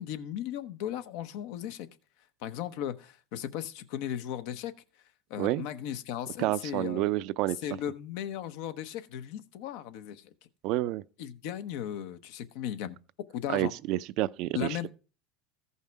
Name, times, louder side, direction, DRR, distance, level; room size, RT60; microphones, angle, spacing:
voice 1, 0.0-1.9 2.4-4.7 5.3-7.0 7.6-10.3 11.2-13.0 13.3-13.7 14.5-14.9, left 10 dB, 70° left, 0.9 m, -36 dB
voice 2, 6.4-7.6 10.6-11.0 13.5-14.9, right 16 dB, 60° right, 0.5 m, -29 dB
14.5 x 5.6 x 4.6 m
supercardioid pair, 105°, 0 cm